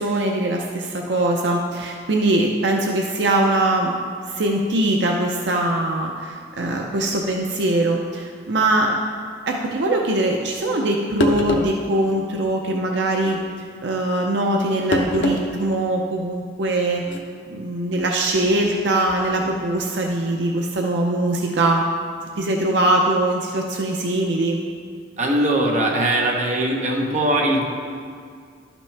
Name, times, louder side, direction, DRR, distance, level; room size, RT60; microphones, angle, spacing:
voice 1, 0.0-4.0 4.3-9.0 9.5-13.4 13.8-17.0 17.5-21.8 22.4-24.6, right 1 dB, 70° right, 1 dB, 0.6 m, -22 dB
sound 1, 10.8-10.9 11.2-11.8 13.2-13.4 14.9-15.4 15.8-15.9 17.0-17.2, left 1 dB, 85° left, 0.8 m, -22 dB
voice 2, 25.2-27.7, right 1 dB, 40° right, 0 dB, 1.0 m, -20 dB
11.5 x 6.0 x 3.3 m, 2.2 s
head